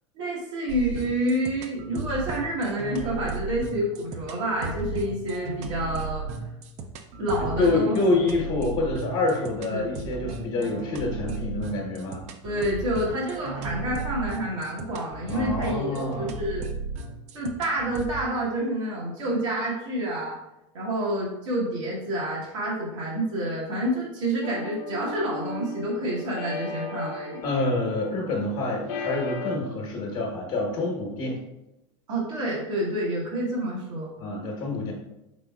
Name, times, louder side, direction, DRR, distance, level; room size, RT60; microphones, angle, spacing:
voice 1, 0.2-6.3 7.2-7.9 9.7-9.8 12.4-16.7 17.3-20.4 20.7-27.4 32.1-34.1, right 1 dB, 70° right, -6 dB, 1.2 m, -28 dB
sound 1, 0.7-18.3, right 3 dB, 45° right, 0.5 m, -35 dB
voice 2, 7.6-12.2 15.3-16.3 27.4-31.4 34.2-34.9, left 2 dB, 50° left, -2 dB, 1.1 m, -27 dB
sound 2, 24.4-29.6, left 3 dB, 70° left, 0.6 m, -36 dB
5.1 x 3.4 x 2.3 m, 0.91 s
hypercardioid pair, 85°, 16 cm